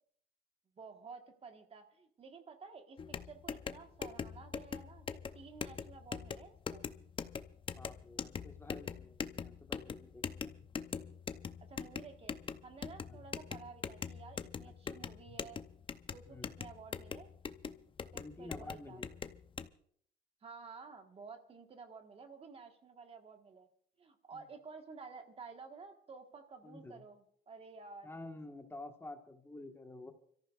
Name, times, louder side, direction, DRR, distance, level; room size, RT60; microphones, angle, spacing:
voice 1, 0.8-6.9 11.7-15.6 16.1-17.3 18.1-19.0 20.4-23.7 24.0-28.1, right 5 dB, 35° right, 5 dB, 1.5 m, -52 dB
sound 1, 3.0-19.7, left 6 dB, 30° left, 0.7 m, -43 dB
voice 2, 7.7-10.5 13.1-13.2 14.8-15.0 16.3-16.5 18.1-19.2 24.3-24.5 26.6-27.0 28.0-30.1, left 2 dB, 15° left, 4 dB, 1.5 m, -50 dB
29.5 x 14.0 x 2.5 m, 0.62 s
cardioid pair, 110°, 17 cm